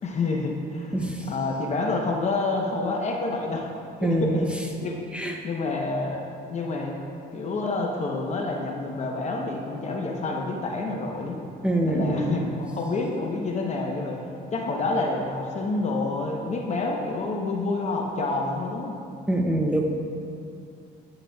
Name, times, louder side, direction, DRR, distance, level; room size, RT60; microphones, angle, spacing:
voice 1, 0.0-3.7 4.0-4.9 5.2-6.2 6.5-7.0 7.3-11.4 11.8-14.2 14.5-19.0, left 3 dB, 40° left, 1 dB, 0.8 m, -28 dB
voice 2, 0.9-1.2 4.0-4.5 5.1-5.3 11.6-12.4 19.3-19.8, right 1 dB, 5° right, 0 dB, 0.7 m, -24 dB
9.5 x 8.8 x 2.3 m, 2.5 s
cardioid pair, 110°, 17 cm